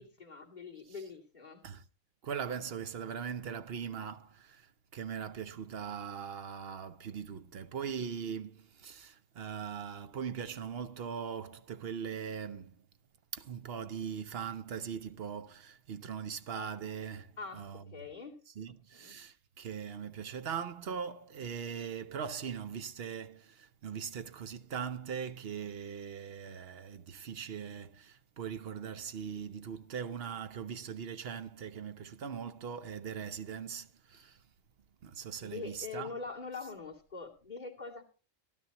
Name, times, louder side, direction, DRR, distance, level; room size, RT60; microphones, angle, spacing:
voice 1, 0.0-1.7 17.4-18.4 18.9-19.2 35.4-38.0, left 4 dB, 35° left, 2.7 m, -44 dB
voice 2, 2.2-12.8 13.3-17.8 18.6-34.4 35.0-36.1, right 7 dB, 55° right, 1.0 m, -40 dB
16.0 x 12.0 x 3.0 m
omnidirectional pair, 1.3 m